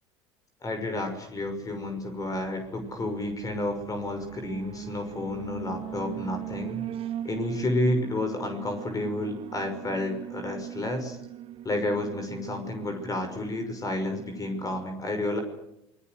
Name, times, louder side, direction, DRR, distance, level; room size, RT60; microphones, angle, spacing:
voice 1, 0.6-6.8 7.2-11.2 11.6-15.4, left 1 dB, 25° left, 6 dB, 6.1 m, -31 dB
Alarm, 1.4-14.9, right 12 dB, 45° right, 1.3 m, -40 dB
27.5 x 21.5 x 8.0 m, 0.82 s
hypercardioid pair, 75°, 13 cm